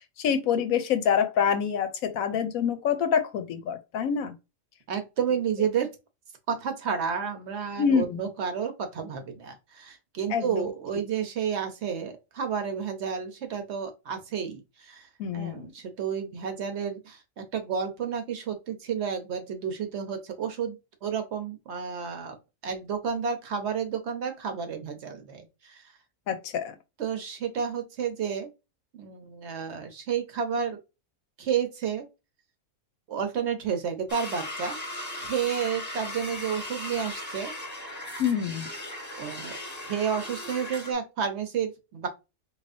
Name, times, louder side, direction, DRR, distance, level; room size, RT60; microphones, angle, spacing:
voice 1, 0.2-4.3 7.8-8.2 10.3-10.7 15.2-15.7 26.3-26.7 38.2-38.7, left 7 dB, 80° left, 1.0 m, -26 dB
voice 2, 4.9-5.9 6.5-22.4 22.6-25.8 27.0-28.5 28.9-30.8 31.4-32.1 33.1-34.8 35.2-37.5 39.2-39.6 39.8-42.1, right 7 dB, 55° right, 1.0 m, -31 dB
sound 1, 34.1-40.9, left 1 dB, 15° left, 1.1 m, -37 dB
4.2 x 3.2 x 2.6 m
omnidirectional pair, 1.5 m